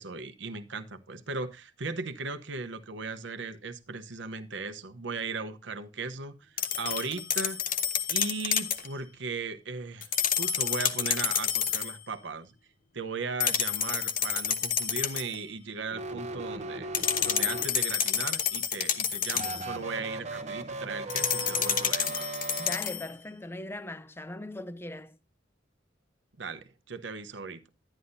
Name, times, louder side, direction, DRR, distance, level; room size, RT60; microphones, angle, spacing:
voice 1, 0.0-7.8 8.1-10.1 10.4-12.5 12.9-16.9 17.2-22.3 26.4-27.7, right 4 dB, 65° right, 0.9 m, -37 dB
sound 1, 6.6-8.9 10.0-12.0 13.4-15.4 16.9-19.7 21.1-23.1, left 8 dB, 45° left, 0.8 m, -29 dB
sound 2, 15.9-18.1 19.3-22.8, right 2 dB, 35° right, 0.9 m, -37 dB
voice 2, 22.6-25.2, left 2 dB, 10° left, 0.5 m, -39 dB
11.5 x 10.0 x 2.7 m
head